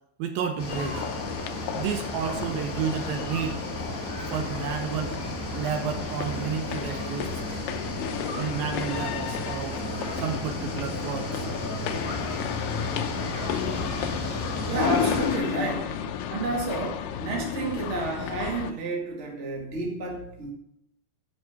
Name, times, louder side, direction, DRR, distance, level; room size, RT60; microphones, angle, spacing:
voice 1, 0.2-1.0 1.7-3.6 4.3-5.2 5.5-7.4 8.3-9.8 10.1-11.9, right 7 dB, 75° right, 6 dB, 2.4 m, -31 dB
sound 1, 0.6-15.4, left 1 dB, 35° left, 1.5 m, -34 dB
sound 2, 0.7-18.7, left 9 dB, 80° left, 2.1 m, -33 dB
voice 2, 14.7-15.9 16.3-20.5, right 3 dB, 30° right, -1 dB, 1.5 m, -30 dB
9.2 x 5.9 x 8.2 m, 0.80 s
omnidirectional pair, 4.5 m